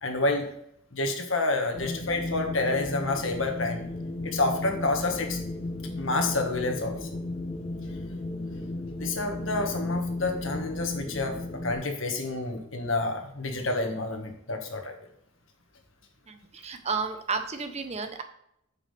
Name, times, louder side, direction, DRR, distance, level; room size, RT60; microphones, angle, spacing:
voice 1, 0.0-0.5 0.9-3.8 4.2-5.4 6.0-7.1 9.0-15.0, left 2 dB, 70° left, 4 dB, 1.6 m, -29 dB
Wind, 1.7-11.7, left 2 dB, 30° left, 0.8 m, -35 dB
voice 2, 16.3-18.2, right 4 dB, 35° right, 7 dB, 0.9 m, -32 dB
9.3 x 7.7 x 3.4 m, 0.75 s
head